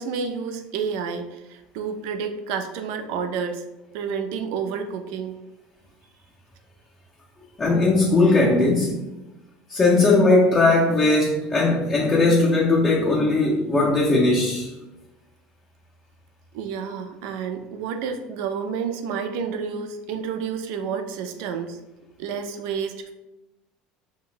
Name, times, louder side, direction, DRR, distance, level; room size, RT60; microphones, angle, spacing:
voice 1, 0.0-3.7 3.9-5.4 16.5-21.8 22.2-23.1, right 6 dB, 75° right, 7 dB, 0.4 m, -30 dB
voice 2, 7.6-9.0 9.7-14.7, left 2 dB, 15° left, -3 dB, 0.4 m, -19 dB
2.5 x 2.1 x 3.7 m, 0.99 s
cardioid pair, 145°, 3 cm